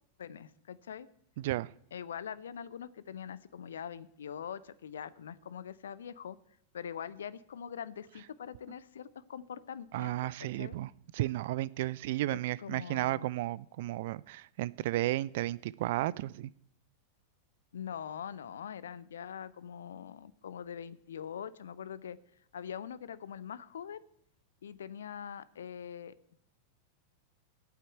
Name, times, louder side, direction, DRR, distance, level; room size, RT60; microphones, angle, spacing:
voice 1, 0.2-1.1 1.9-6.4 6.7-10.8 12.3-13.3 17.7-22.2 22.5-24.0 24.6-26.4, left 8 dB, 65° left, 18 dB, 0.6 m, -43 dB
voice 2, 1.4-1.7 9.9-16.5, right 16 dB, 50° right, 21 dB, 0.4 m, -33 dB
8.7 x 8.4 x 9.2 m, 0.72 s
figure-of-eight pair, 90°, 0 cm